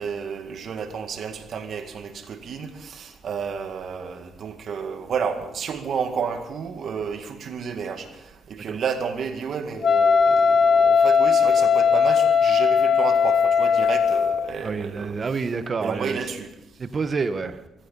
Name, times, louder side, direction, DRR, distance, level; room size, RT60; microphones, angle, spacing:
voice 1, 0.0-15.2 15.8-16.5, right 6 dB, 60° right, 6 dB, 2.0 m, -31 dB
Wind instrument woodwind instrument, 9.8-14.5, left 6 dB, 45° left, 0.8 m, -18 dB
voice 2, 14.6-16.3 16.8-17.6, right 4 dB, 40° right, 11 dB, 1.1 m, -28 dB
17.5 x 15.0 x 5.5 m, 0.95 s
cardioid pair, 90°, 0 cm